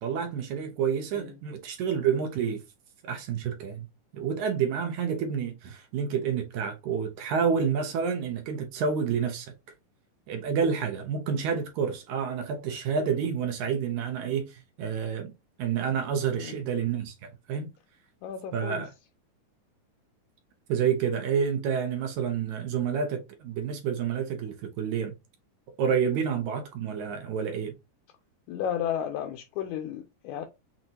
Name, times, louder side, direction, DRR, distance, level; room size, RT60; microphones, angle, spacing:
voice 1, 0.0-2.6 3.0-3.9 4.1-9.5 10.3-15.3 15.6-17.7 18.5-18.9 20.7-25.1 25.8-27.7, right 7 dB, 75° right, 2.1 m, -29 dB
voice 2, 16.3-16.7 18.2-18.9 28.5-30.5, left 9 dB, 80° left, 1.9 m, -33 dB
6.1 x 2.7 x 2.8 m
omnidirectional pair, 3.7 m